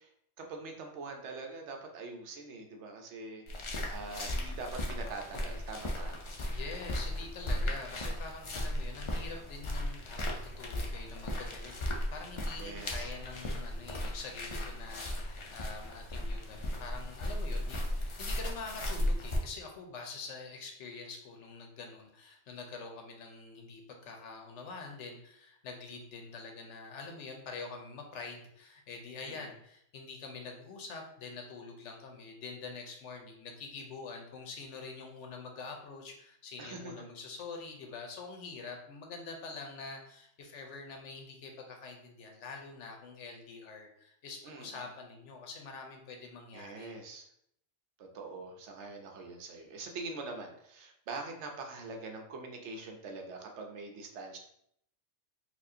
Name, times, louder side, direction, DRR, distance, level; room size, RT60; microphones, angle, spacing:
voice 1, 0.0-6.2 7.5-7.8 12.6-13.1 29.2-29.5 36.6-37.0 44.4-44.8 46.5-47.3 48.0-54.4, right 3 dB, 75° right, 3 dB, 1.0 m, -44 dB
sound 1, 3.5-19.4, left 1 dB, 50° left, 0.3 m, -36 dB
voice 2, 6.5-47.0, left 4 dB, 80° left, 2 dB, 1.0 m, -45 dB
4.3 x 2.4 x 2.6 m, 0.71 s
omnidirectional pair, 1.2 m